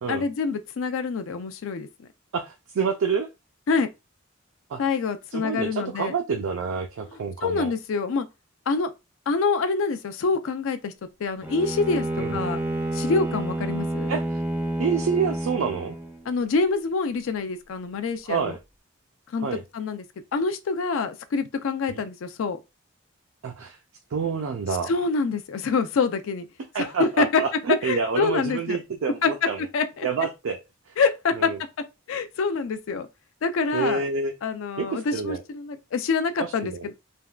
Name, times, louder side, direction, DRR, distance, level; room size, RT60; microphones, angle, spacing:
voice 1, 0.1-1.9 3.7-3.9 4.8-6.1 7.4-8.3 8.7-8.9 9.3-10.9 11.2-12.1 12.3-12.6 12.9-14.1 16.3-18.5 19.3-19.5 19.7-20.0 20.3-22.6 24.9-26.5 26.8-27.4 27.8-28.8 29.2-29.3 29.7-30.1 31.0-31.5 32.1-33.1 33.4-34.0 34.4-36.9, left 4 dB, 70° left, 0.4 m, -26 dB
voice 2, 2.3-3.3 4.7-4.8 5.3-7.7 12.2-12.4 14.1-14.4 14.8-15.9 18.3-18.6 19.4-19.6 21.9-22.0 23.4-23.8 24.1-24.9 26.7-29.7 30.0-30.6 30.9-31.0 31.4-31.6 33.7-34.3 34.8-35.4 36.4-36.9, right 5 dB, 75° right, 0.4 m, -28 dB
Bowed string instrument, 11.4-16.3, right 1 dB, 10° right, 0.4 m, -29 dB
3.4 x 2.2 x 2.3 m
head